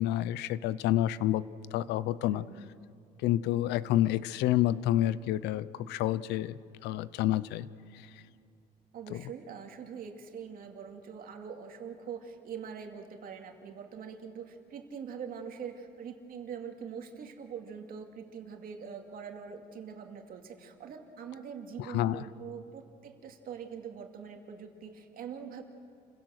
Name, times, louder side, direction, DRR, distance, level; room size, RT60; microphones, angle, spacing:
voice 1, 0.0-1.4 1.7-2.4 3.2-7.7 7.9-8.1 9.1-9.2 21.8-22.2, left 14 dB, 85° left, 18 dB, 0.6 m, -29 dB
voice 2, 2.3-2.6 8.9-25.6, right 7 dB, 60° right, 4 dB, 2.4 m, -43 dB
29.0 x 16.5 x 6.5 m, 2.8 s
cardioid pair, 110°, 17 cm